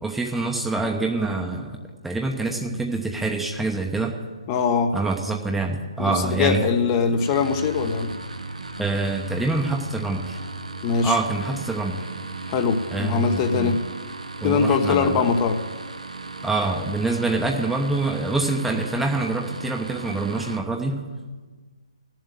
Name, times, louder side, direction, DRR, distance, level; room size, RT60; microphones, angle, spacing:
voice 1, 0.0-1.8 2.0-4.1 4.9-6.7 8.8-10.4 11.0-12.0 12.9-13.8 14.4-15.3 16.4-21.0, right 3 dB, 5° right, 1 dB, 0.9 m, -25 dB
voice 2, 4.5-4.9 6.0-8.1 10.8-11.2 12.5-13.8 14.4-15.6, left 5 dB, 30° left, 5 dB, 1.0 m, -22 dB
sound 1, 7.2-20.6, right 3 dB, 85° right, 1.1 m, -36 dB
14.5 x 7.5 x 9.1 m, 1.4 s
figure-of-eight pair, 140°, 4 cm